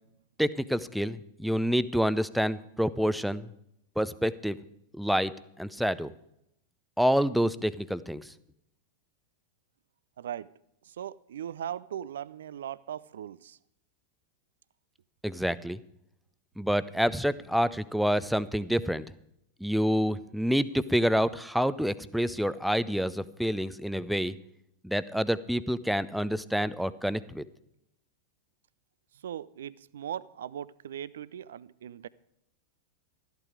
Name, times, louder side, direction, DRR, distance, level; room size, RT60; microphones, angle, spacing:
voice 1, 0.4-3.5 4.0-4.6 4.9-5.3 5.6-6.1 7.0-8.3 15.2-15.8 16.6-19.0 19.6-24.3 24.8-27.4, equal, ahead, 0.5 m, -27 dB
voice 2, 10.2-10.5 10.8-13.6 29.2-32.1, right 10 dB, 60° right, 0.4 m, -39 dB
13.5 x 11.5 x 4.9 m
figure-of-eight pair, 90°, 0 cm